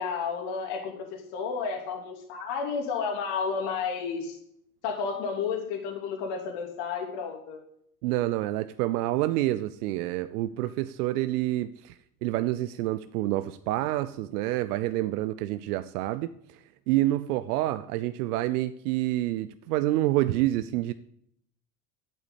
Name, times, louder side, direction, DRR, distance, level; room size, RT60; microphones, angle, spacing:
voice 1, 0.0-4.4 4.8-7.6, left 5 dB, 60° left, 1 dB, 3.0 m, -32 dB
voice 2, 8.0-11.9 12.2-16.3 16.9-20.9, right 15 dB, 75° right, 13 dB, 0.8 m, -28 dB
11.0 x 8.8 x 8.2 m, 0.69 s
hypercardioid pair, 75°, 47 cm